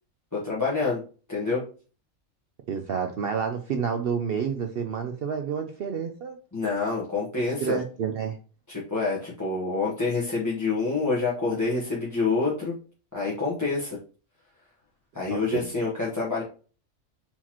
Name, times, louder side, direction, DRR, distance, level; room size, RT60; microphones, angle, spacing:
voice 1, 0.3-1.0 1.3-1.6 6.5-7.8 8.7-12.7 13.1-14.0 15.1-16.4, left 3 dB, 15° left, -8 dB, 1.1 m, -27 dB
voice 2, 2.7-6.4 7.6-8.4 15.3-15.6, right 6 dB, 65° right, 5 dB, 0.6 m, -29 dB
4.3 x 3.8 x 2.9 m, 0.36 s
omnidirectional pair, 1.5 m